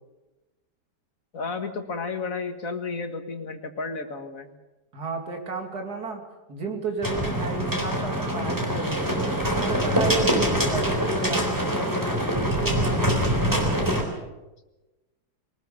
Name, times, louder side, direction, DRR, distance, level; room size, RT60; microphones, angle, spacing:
voice 1, 1.3-4.5, left 4 dB, 50° left, 7 dB, 2.1 m, -32 dB
voice 2, 4.9-6.2 6.5-9.2 9.6-13.9, right 3 dB, 65° right, 3 dB, 3.3 m, -32 dB
sound 1, 7.0-14.0, equal, 10° right, 3.9 m, -24 dB
23.0 x 19.5 x 7.0 m, 1.1 s
omnidirectional pair, 1.8 m